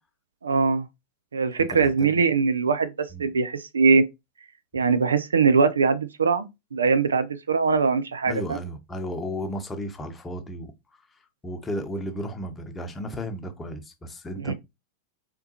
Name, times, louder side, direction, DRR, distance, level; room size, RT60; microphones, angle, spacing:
voice 1, 0.4-0.9 1.3-4.0 4.7-6.5 6.7-8.6 14.4-14.5, right 5 dB, 70° right, 0.5 m, -22 dB
voice 2, 1.6-2.3 3.1-3.3 8.3-10.7 11.4-14.5, equal, 15° left, 0.8 m, -34 dB
4.4 x 3.5 x 2.8 m
figure-of-eight pair, 90°, 0 cm